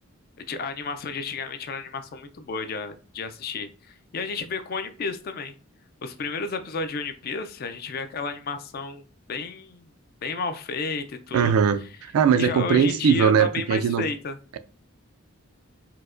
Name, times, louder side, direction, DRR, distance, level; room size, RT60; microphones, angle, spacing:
voice 1, 0.4-5.5 6.0-9.9 10.2-11.5 12.4-14.4, left 4 dB, 45° left, 0.3 m, -32 dB
voice 2, 11.3-14.1, right 7 dB, 80° right, 0.3 m, -20 dB
4.5 x 2.1 x 2.4 m
head